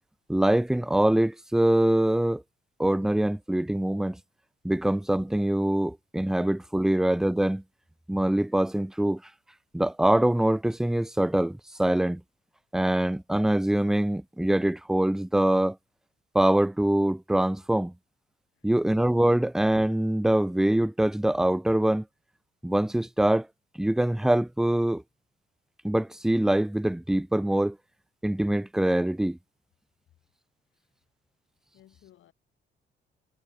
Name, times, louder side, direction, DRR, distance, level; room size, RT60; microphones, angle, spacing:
voice 1, 0.3-2.4 2.8-4.2 4.6-7.6 8.1-9.2 9.7-12.2 12.7-15.8 16.3-17.9 18.6-22.0 22.6-23.5 23.8-25.0 25.8-27.8 28.2-29.4, right 1 dB, 5° right, 0.4 m, -24 dB
voice 2, 31.7-32.3, left 12 dB, 75° left, 6.1 m, -59 dB
cardioid pair, 90°, 20 cm